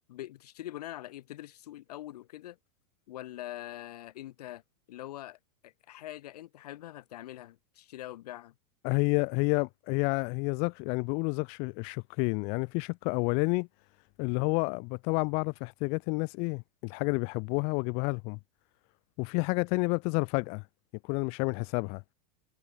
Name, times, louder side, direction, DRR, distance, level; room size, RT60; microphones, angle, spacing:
voice 1, 0.1-2.6 3.1-4.6 4.9-8.5, left 14 dB, 80° left, 0.9 m, -43 dB
voice 2, 8.8-13.7 14.2-18.4 19.2-20.6 21.0-22.0, left 35 dB, 30° left, 0.4 m, -30 dB
supercardioid pair, 160°, 20 cm